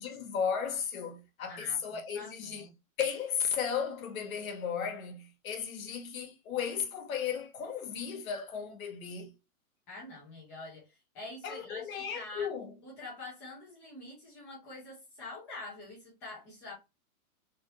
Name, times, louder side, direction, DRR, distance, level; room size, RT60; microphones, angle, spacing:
voice 1, 0.0-2.7 3.0-9.3 11.4-12.7, left 7 dB, 70° left, 1.1 m, -35 dB
voice 2, 1.5-2.7 9.9-12.5 12.8-16.7, left 2 dB, 5° left, 0.3 m, -46 dB
3.1 x 2.7 x 3.0 m
hypercardioid pair, 140°, 43 cm